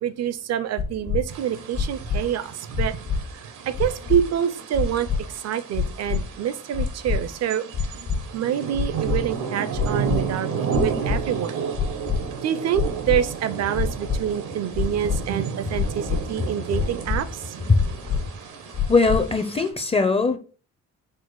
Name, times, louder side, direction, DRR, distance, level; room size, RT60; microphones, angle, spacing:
voice 1, 0.0-2.9 3.7-5.1 5.4-7.6 8.3-10.5 10.7-11.6 12.4-17.5, right 9 dB, 60° right, 0.5 m, -26 dB
sound 1, 0.8-1.2 1.7-2.2 2.7-3.2 3.7-4.2 4.7-5.2 5.7-6.2 6.7-7.2 7.7-8.2 8.7-9.2 9.7-10.2 10.7-11.2 11.7-12.2 12.7-13.2 13.7-14.2 14.7-15.2 15.7-16.2 16.7-17.2 17.7-18.2 18.7-19.2, left 6 dB, 60° left, 1.3 m, -24 dB
sound 2, 1.3-19.7, right 6 dB, 85° right, 0.9 m, -32 dB
voice 2, 18.9-20.4, left 4 dB, 20° left, 0.5 m, -20 dB
4.5 x 2.2 x 4.6 m
cardioid pair, 90°, 30 cm